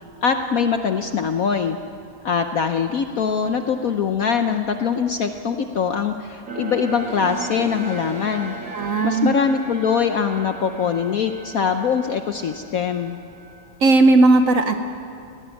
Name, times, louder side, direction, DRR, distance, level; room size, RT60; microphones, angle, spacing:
voice 1, 0.2-1.8 2.2-8.6 9.0-13.2, left 6 dB, 65° left, 7 dB, 0.9 m, -22 dB
sound 1, 6.5-13.7, right 3 dB, 40° right, 2.6 m, -36 dB
voice 2, 8.7-9.4 13.8-14.7, right 2 dB, 55° right, 7 dB, 1.0 m, -16 dB
18.0 x 17.0 x 9.2 m, 2.5 s
omnidirectional pair, 2.2 m